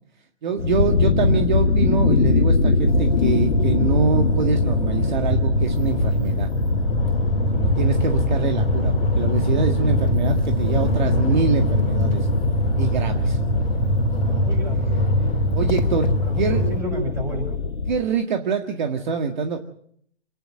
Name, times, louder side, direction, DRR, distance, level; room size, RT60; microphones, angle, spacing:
voice 1, 0.4-6.5 7.5-12.3 12.8-13.4 14.2-14.4 15.5-16.6 17.9-19.6, right 5 dB, 45° right, 5 dB, 1.9 m, -25 dB
sound 1, 0.6-18.0, left 5 dB, 90° left, 1.8 m, -24 dB
sound 2, 1.1-16.4, right 5 dB, 70° right, 1.3 m, -28 dB
sound 3, 2.8-16.8, left 2 dB, 60° left, 2.9 m, -24 dB
voice 2, 14.3-14.9 15.1-15.4 16.2-17.6, right 1 dB, 10° right, 1 dB, 6.6 m, -31 dB
27.0 x 10.5 x 9.8 m, 0.65 s
hypercardioid pair, 160°, 32 cm